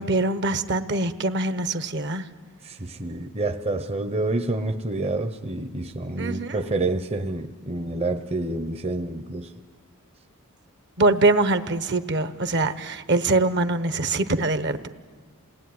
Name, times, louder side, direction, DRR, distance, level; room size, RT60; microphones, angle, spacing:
voice 1, 0.0-2.3 6.2-6.6 11.0-14.9, right 2 dB, 50° right, 11 dB, 1.1 m, -23 dB
voice 2, 2.6-9.5, right 2 dB, 25° right, 6 dB, 0.8 m, -28 dB
28.0 x 19.5 x 9.5 m, 1.5 s
head